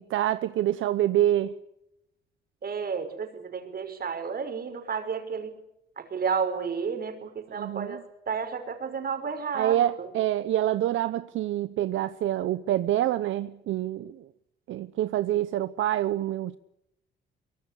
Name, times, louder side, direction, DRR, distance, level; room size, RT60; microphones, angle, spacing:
voice 1, 0.0-1.5 7.5-8.0 9.5-14.3 14.7-16.6, right 12 dB, 80° right, 0.9 m, -26 dB
voice 2, 2.6-5.5 6.0-10.1, right 6 dB, 50° right, 5.8 m, -32 dB
24.5 x 22.5 x 8.5 m
cardioid pair, 90°, 20 cm